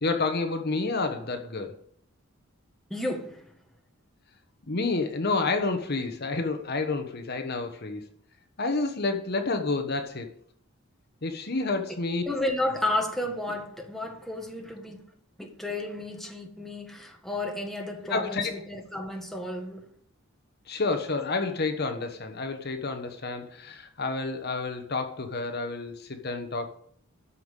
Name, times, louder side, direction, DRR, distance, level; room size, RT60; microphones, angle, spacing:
voice 1, 0.0-1.8 4.7-8.1 8.6-10.3 11.2-12.2 18.1-18.6 20.7-26.7, left 3 dB, 50° left, 1.2 m, -29 dB
voice 2, 2.9-3.5 12.3-15.0 15.4-19.9, left 1 dB, ahead, 1.6 m, -32 dB
13.0 x 5.7 x 8.2 m
head